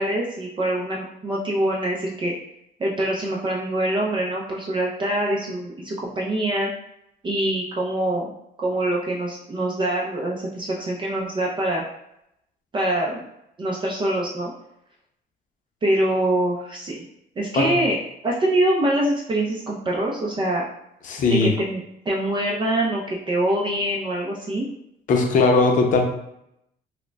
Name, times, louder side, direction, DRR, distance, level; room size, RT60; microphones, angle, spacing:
voice 1, 0.0-2.3 2.8-6.7 7.2-8.3 8.6-11.8 12.7-13.2 13.6-14.5 15.8-17.0 17.4-18.0 18.2-20.6 21.3-24.7, right 1 dB, 30° right, -3 dB, 0.5 m, -24 dB
voice 2, 21.1-21.5 25.1-26.0, left 3 dB, 50° left, 3 dB, 0.6 m, -18 dB
4.8 x 2.1 x 2.2 m, 0.79 s
cardioid pair, 110°, 17 cm